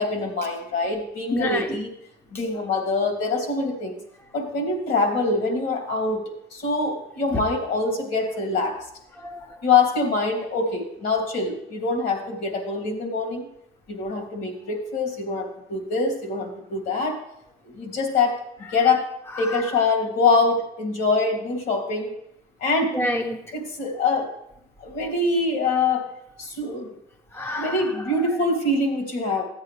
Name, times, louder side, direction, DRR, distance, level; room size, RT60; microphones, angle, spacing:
voice 1, 0.0-1.9 2.3-4.0 4.3-6.2 6.5-8.8 9.6-13.5 13.9-17.2 17.7-19.0 19.4-22.1 22.6-22.9 23.5-24.3 24.8-26.0 26.4-27.0 27.6-29.4, left 3 dB, 70° left, 2.9 m, -24 dB
voice 2, 1.3-1.8 9.2-9.6 19.4-19.6 22.9-23.5 27.3-27.9, left 1 dB, 15° left, 0.8 m, -28 dB
14.0 x 8.4 x 3.3 m
cardioid pair, 110°, 17 cm